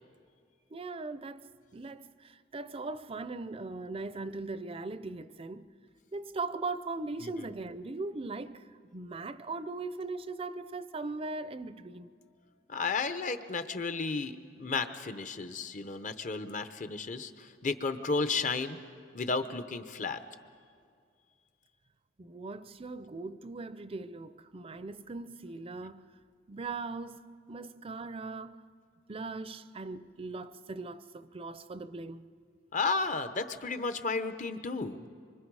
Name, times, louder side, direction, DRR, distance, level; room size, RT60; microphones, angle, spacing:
voice 1, 0.7-5.7 6.1-12.1 22.2-26.1 26.5-28.6 29.1-32.3, right 3 dB, 30° right, 0.5 m, -39 dB
voice 2, 12.7-18.8 19.1-20.2 32.7-35.0, left 4 dB, 45° left, 0.9 m, -33 dB
25.5 x 25.0 x 4.8 m
head